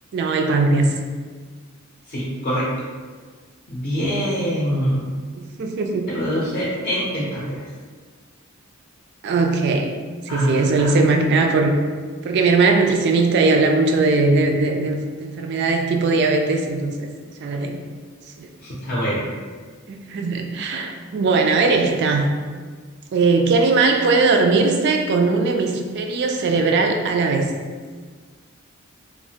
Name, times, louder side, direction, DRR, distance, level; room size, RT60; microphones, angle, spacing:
voice 1, 0.1-0.9 4.0-4.3 5.4-6.1 9.2-9.9 10.3-11.7 12.2-17.1 17.4-17.8 18.4-18.5 19.9-22.3 23.1-27.5, right 3 dB, 55° right, 4 dB, 0.3 m, -19 dB
voice 2, 2.1-2.7 3.7-5.0 6.1-7.6 10.3-10.9 18.6-19.3, equal, 45° left, -7 dB, 0.5 m, -24 dB
3.1 x 2.1 x 2.7 m, 1.5 s
head